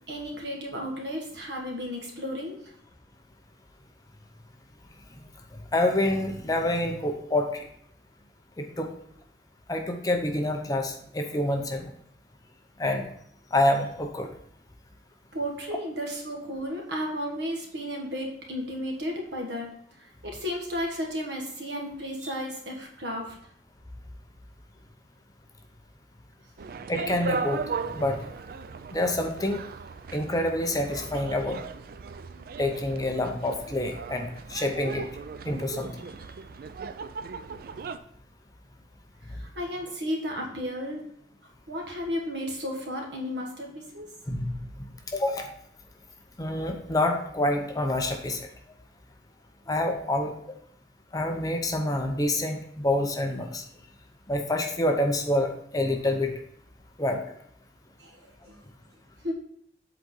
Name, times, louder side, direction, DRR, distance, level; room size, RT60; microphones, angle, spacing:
voice 1, 0.1-2.7 15.3-19.7 20.2-23.4 39.3-41.0 41.7-44.1 58.0-58.2 58.5-58.6 59.2-59.3, equal, 75° right, 1 dB, 1.5 m, -33 dB
voice 2, 5.7-7.7 8.6-8.9 9.7-11.9 12.8-13.1 13.5-14.3 22.2-22.3 26.9-27.6 27.9-28.3 28.9-29.6 30.1-31.6 32.6-35.1 35.4-36.1 44.3-44.6 45.1-45.5 46.4-48.5 49.7-50.3 51.1-53.6 54.3-56.3 57.0-57.2, left 1 dB, 20° left, 3 dB, 0.7 m, -27 dB
sound 1, 26.6-38.0, right 5 dB, 55° right, 0.4 m, -37 dB
7.7 x 4.0 x 3.8 m, 0.68 s
head